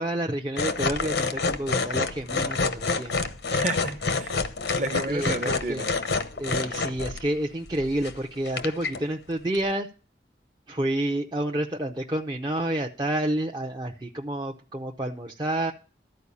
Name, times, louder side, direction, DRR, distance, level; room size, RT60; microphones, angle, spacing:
voice 1, 0.0-3.3 5.1-5.8 6.4-9.9 10.7-15.7, right 1 dB, 25° right, 0.6 m, -29 dB
sound 1, 0.6-7.2 7.7-8.1 8.4-9.0 9.5-9.6, left 4 dB, 80° left, 0.9 m, -28 dB
voice 2, 3.5-4.3 4.7-5.9, right 2 dB, 45° right, 1.0 m, -31 dB
13.0 x 4.7 x 8.3 m
head